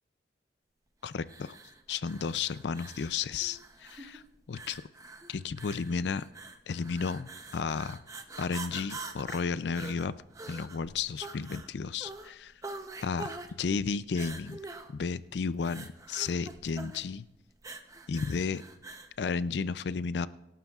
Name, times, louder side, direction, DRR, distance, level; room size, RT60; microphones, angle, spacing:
voice 1, 1.0-1.6 1.9-4.2 4.5-4.8 5.3-6.2 6.7-8.0 8.4-10.1 10.5-12.5 13.0-13.3 13.6-14.6 14.9-17.2 18.1-18.6 19.2-20.3, left 5 dB, 75° left, 16 dB, 0.4 m, -33 dB
sound 1, 1.2-19.2, right 3 dB, 20° right, 0.7 m, -45 dB
25.0 x 11.5 x 2.4 m, 0.88 s
head